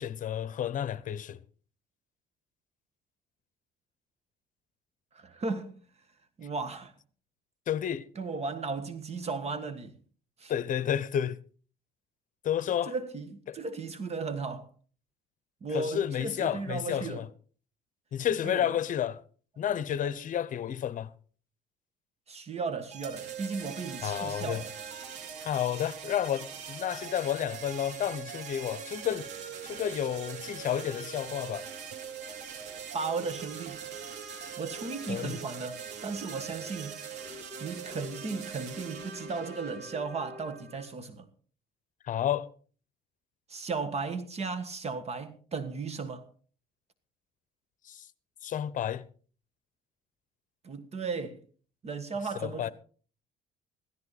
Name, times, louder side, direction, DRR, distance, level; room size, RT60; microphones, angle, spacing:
voice 1, 0.0-1.4 7.7-8.0 10.5-11.4 12.4-12.9 13.5-13.6 15.7-17.3 18.1-19.2 19.6-21.1 24.0-24.6 25.4-29.3 29.6-31.7 35.1-35.4 42.0-42.5 47.9-48.1 48.4-49.0 52.4-52.7, left 10 dB, 50° left, 0.9 m, -31 dB
voice 2, 5.1-5.8 6.4-6.9 8.1-10.0 10.4-10.5 12.9-14.7 15.6-17.2 18.4-18.8 20.0-20.1 22.3-24.7 32.9-33.8 34.6-37.0 37.6-41.3 43.5-46.3 50.6-51.4 51.8-52.7, right 4 dB, 40° right, 1.5 m, -35 dB
sound 1, 22.9-40.9, right 6 dB, 85° right, 3.4 m, -42 dB
16.5 x 14.0 x 4.2 m
cardioid pair, 110°, 17 cm